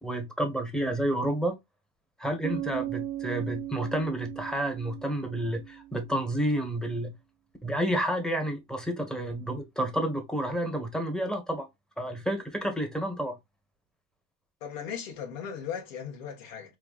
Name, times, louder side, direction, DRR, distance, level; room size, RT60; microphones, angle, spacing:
voice 1, 0.0-1.6 2.2-7.1 7.6-11.7 12.0-13.4, right 1 dB, ahead, 1.3 m, -30 dB
Bass guitar, 2.4-6.3, right 13 dB, 25° right, 0.4 m, -37 dB
voice 2, 14.6-16.8, left 7 dB, 85° left, 1.4 m, -37 dB
4.8 x 3.1 x 2.4 m
supercardioid pair, 100°, 38 cm